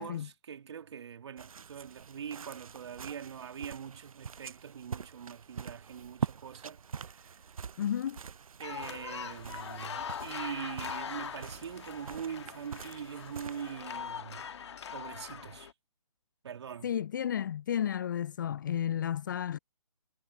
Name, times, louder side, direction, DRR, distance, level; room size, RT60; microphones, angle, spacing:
voice 1, 0.0-7.4 8.6-14.5 14.9-15.7 16.4-16.9, right 8 dB, 45° right, 3.2 m, -43 dB
sound 1, 1.4-14.1, right 6 dB, 65° right, 0.6 m, -44 dB
voice 2, 7.8-8.2 16.8-19.6, left 9 dB, 30° left, 0.6 m, -32 dB
sound 2, 8.6-15.7, left 7 dB, 45° left, 1.8 m, -42 dB
figure-of-eight pair, 145°, 19 cm